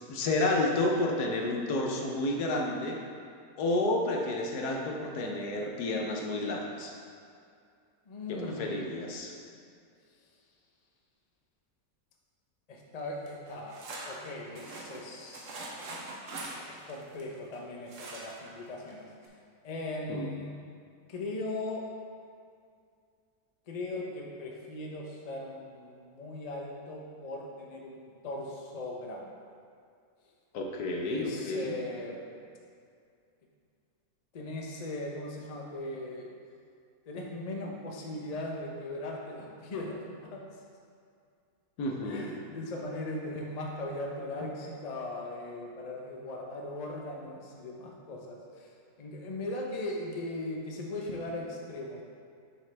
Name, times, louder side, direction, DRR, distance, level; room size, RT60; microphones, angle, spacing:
voice 1, 0.1-3.0 3.6-6.9 8.3-9.3 20.1-20.3 30.5-31.8 41.8-42.3, left 2 dB, 85° left, 1 dB, 1.4 m, -30 dB
voice 2, 8.1-9.0 12.7-13.8 14.0-15.6 16.7-19.0 19.6-20.5 21.1-21.8 23.7-29.3 31.0-32.2 34.3-36.3 37.1-40.4 42.0-48.7 49.0-52.0, left 2 dB, 35° left, -1 dB, 0.7 m, -39 dB
sound 1, 13.3-17.6 17.9-18.5 18.9-19.0 19.2-19.3, right 2 dB, 60° right, 1.2 m, -43 dB
6.7 x 6.3 x 3.4 m, 2.3 s
omnidirectional pair, 1.6 m